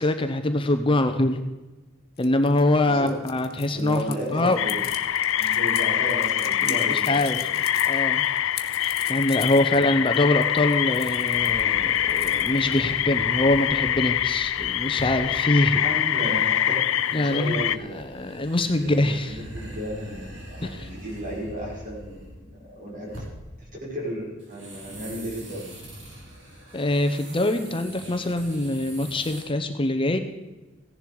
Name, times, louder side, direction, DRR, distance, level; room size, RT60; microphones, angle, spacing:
voice 1, 0.0-1.4 2.2-4.0 4.3-4.6 5.4-5.5 6.6-7.5 7.9-8.2 8.8-15.8 17.1-17.6 17.9-19.4 20.6-20.9 26.7-30.2, left 1 dB, 25° left, 8 dB, 0.8 m, -24 dB
sound 1, 2.2-11.6 11.9-12.9, left 11 dB, 55° left, 1.2 m, -39 dB
voice 2, 2.8-3.2 3.7-4.8 5.3-7.3 15.7-18.1 18.8-23.2 23.6-25.7, equal, 45° right, -3 dB, 5.0 m, -34 dB
sound 2, 4.6-17.8, left 11 dB, 75° left, 0.4 m, -24 dB
sound 3, 9.9-15.3 16.3-22.6 22.9-23.5 24.4-29.5, right 1 dB, 65° right, 4.4 m, -42 dB
16.0 x 11.0 x 4.7 m, 1.2 s
head